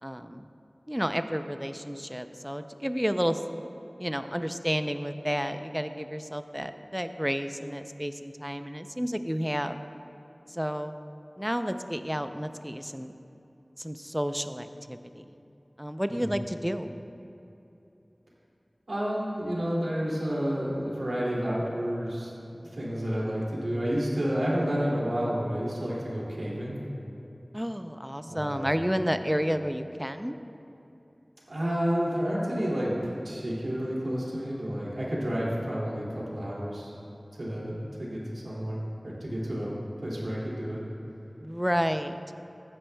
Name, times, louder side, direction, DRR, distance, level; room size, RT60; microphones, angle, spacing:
voice 1, 0.0-0.5 0.9-3.4 4.0-9.8 10.5-10.9 11.4-13.1 13.8-15.4 15.8-16.9 27.5-30.4 41.4-42.2, equal, 5° right, 9 dB, 0.4 m, -31 dB
voice 2, 18.9-22.3 22.7-26.8 28.2-28.7 31.5-36.9 37.4-39.7 40.0-40.8, equal, 90° right, -6 dB, 2.3 m, -30 dB
15.5 x 9.8 x 2.2 m, 2.9 s
wide cardioid pair, 40°, 0 cm